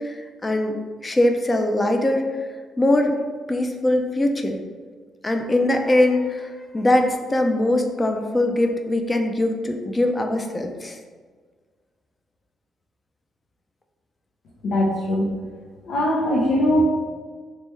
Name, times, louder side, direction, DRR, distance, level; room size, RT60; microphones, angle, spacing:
voice 1, 0.0-2.5 2.8-3.2 3.5-4.6 5.2-11.0, left 1 dB, 20° left, 4 dB, 0.4 m, -22 dB
voice 2, 14.6-15.3 15.8-16.8, left 1 dB, 75° left, -5 dB, 0.7 m, -21 dB
3.3 x 3.2 x 3.1 m, 1.5 s
cardioid pair, 90°, 0 cm